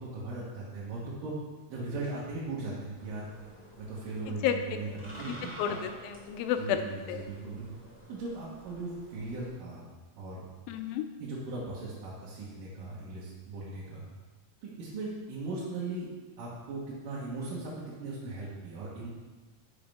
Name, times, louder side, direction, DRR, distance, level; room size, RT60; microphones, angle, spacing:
voice 1, 0.0-1.3 1.7-3.3 3.8-5.8 6.6-7.7 8.1-9.8 10.2-10.5 11.2-14.0 14.6-16.1 16.4-17.7 18.0-19.1, right 3 dB, 75° right, -7 dB, 2.9 m, -38 dB
sound 1, 2.9-9.5, equal, 5° left, 1.2 m, -50 dB
voice 2, 5.6-7.2 10.7-11.1, left 9 dB, 90° left, 7 dB, 2.4 m, -31 dB
9.5 x 6.5 x 3.5 m, 1.3 s
omnidirectional pair, 4.1 m